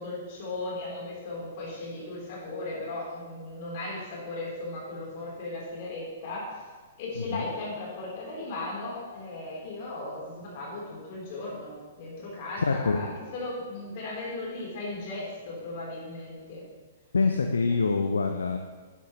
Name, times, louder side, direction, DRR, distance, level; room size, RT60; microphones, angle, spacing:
voice 1, 0.0-6.6 7.0-16.6 17.7-17.8, left 2 dB, 40° left, -5 dB, 3.7 m, -37 dB
voice 2, 12.6-13.0 17.1-18.6, left 4 dB, 70° left, 4 dB, 0.7 m, -25 dB
12.0 x 10.0 x 3.1 m, 1.4 s
figure-of-eight pair, 115°, 0 cm